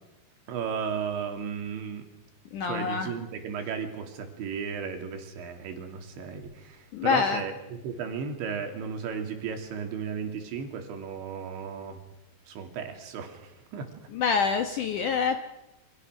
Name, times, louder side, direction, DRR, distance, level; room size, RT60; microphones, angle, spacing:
voice 1, 0.5-2.1 2.7-12.0 12.5-13.9, right 6 dB, 80° right, 4 dB, 5.0 m, -35 dB
voice 2, 2.5-3.1 6.9-7.4 14.1-15.4, left 5 dB, 70° left, 6 dB, 2.0 m, -26 dB
28.0 x 25.5 x 6.3 m, 0.97 s
omnidirectional pair, 5.1 m